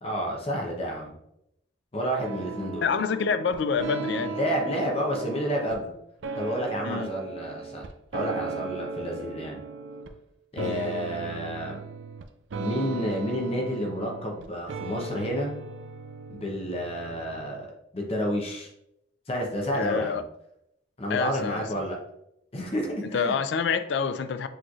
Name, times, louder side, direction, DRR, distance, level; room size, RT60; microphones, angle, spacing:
voice 1, 0.0-1.1 1.9-2.9 4.2-5.9 6.3-7.9 8.1-9.6 10.5-11.8 12.6-15.5 16.3-17.7 17.9-18.7 19.3-20.2 21.0-22.0 22.5-23.4, equal, 30° left, 0 dB, 0.7 m, -30 dB
sound 1, 2.2-5.8 6.2-10.2 10.6-17.7, right 4 dB, 70° right, 0.4 m, -37 dB
voice 2, 2.8-4.3 6.8-7.1 10.6-10.8 19.7-20.2 21.1-21.6 23.1-24.5, left 6 dB, 65° left, 11 dB, 0.3 m, -27 dB
6.2 x 3.1 x 2.4 m, 0.79 s
head